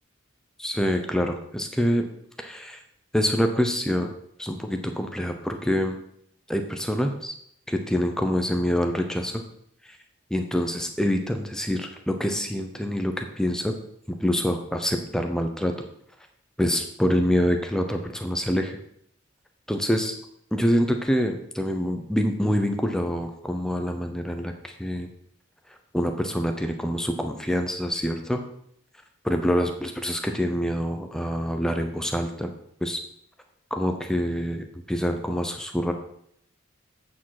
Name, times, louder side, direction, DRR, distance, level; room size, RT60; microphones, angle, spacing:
voice 1, 0.6-2.0 2.4-2.8 3.1-4.1 4.4-6.0 6.5-7.3 7.7-9.4 10.3-13.8 14.1-15.7 16.6-18.8 19.7-20.1 20.5-25.1 25.9-28.4 29.2-32.5 32.8-33.0 33.7-35.9, equal, 5° left, 5 dB, 0.7 m, -26 dB
8.6 x 5.0 x 5.9 m, 0.70 s
head